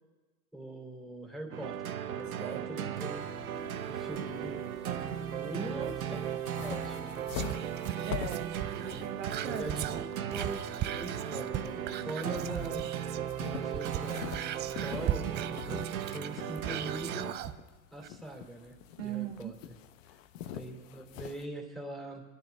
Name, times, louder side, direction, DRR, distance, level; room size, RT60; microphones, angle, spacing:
voice 1, 0.5-3.2 3.9-4.7 5.3-6.2 6.6-7.2 8.8-9.0 9.4-10.7 10.9-12.8 13.5-14.5 14.8-17.3 17.9-18.8 19.0-19.5 20.5-22.2, right 1 dB, ahead, 1 dB, 2.9 m, -42 dB
sound 1, 1.5-17.3, right 9 dB, 90° right, 1.0 m, -37 dB
voice 2, 2.4-2.7 8.0-9.7 19.0-19.6, right 12 dB, 60° right, 6 dB, 1.0 m, -39 dB
sound 2, 3.0-21.5, left 9 dB, 65° left, 1.0 m, -46 dB
Whispering, 7.3-13.3 13.6-17.6 18.0-18.1, right 11 dB, 25° right, 0.4 m, -39 dB
24.5 x 11.0 x 3.4 m, 1.3 s
hypercardioid pair, 115°, 41 cm